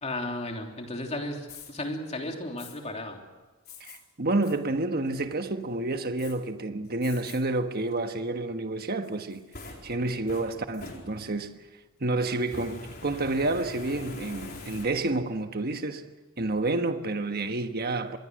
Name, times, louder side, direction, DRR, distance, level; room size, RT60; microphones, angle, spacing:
voice 1, 0.0-3.2, left 1 dB, 30° left, 3.2 m, -34 dB
Fire, 1.5-1.7 2.6-2.7 3.7-4.0 4.4-4.6 5.1-5.5 6.2-6.3 7.0-7.4 7.9-8.0 9.0-11.5 12.4-15.3, left 2 dB, 45° left, 4.3 m, -44 dB
voice 2, 3.8-9.5 9.8-11.5 12.0-16.1 16.4-18.2, right 2 dB, 45° right, 1.4 m, -29 dB
25.5 x 21.5 x 6.5 m
head